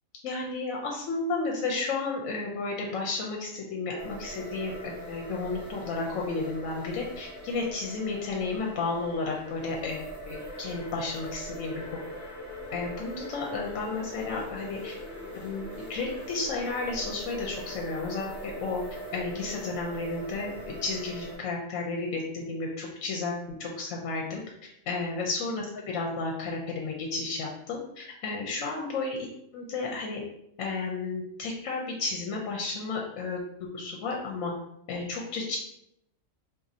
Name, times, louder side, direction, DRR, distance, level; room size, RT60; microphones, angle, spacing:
voice 1, 0.2-11.7 12.7-14.9 15.4-15.6 15.9-18.8 19.1-24.4 24.9-29.2 29.5-30.2 30.6-33.4 33.7-34.5 34.9-35.6, left 3 dB, 75° left, -1 dB, 1.0 m, -32 dB
sound 1, 4.0-21.4, equal, 50° right, 1.0 m, -41 dB
2.5 x 2.5 x 4.1 m, 0.78 s
omnidirectional pair, 1.4 m